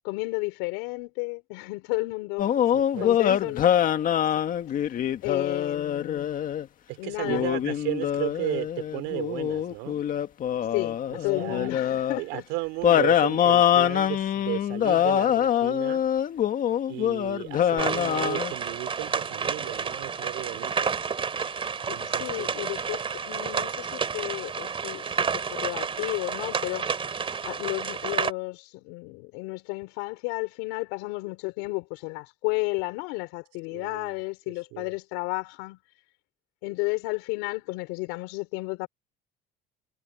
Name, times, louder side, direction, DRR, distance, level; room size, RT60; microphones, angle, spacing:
voice 1, 0.0-2.5 3.0-3.7 4.4-4.5 5.2-6.3 7.0-7.4 10.7-12.4 21.9-27.0 27.4-35.8 36.6-38.9, left 26 dB, 85° left, 4.2 m, -32 dB
music school india, 2.4-6.7 7.2-12.2 12.8-18.5, left 10 dB, 45° left, 1.9 m, -24 dB
voice 2, 2.7-3.1 3.4-3.5 6.9-10.0 11.1-11.7 12.2-16.0 16.9-21.0 21.9-22.5 33.7-34.2 34.7-34.9, right 25 dB, 85° right, 3.7 m, -34 dB
sound 1, 17.8-28.3, right 6 dB, 30° right, 3.0 m, -30 dB
cardioid pair, 115°, 20 cm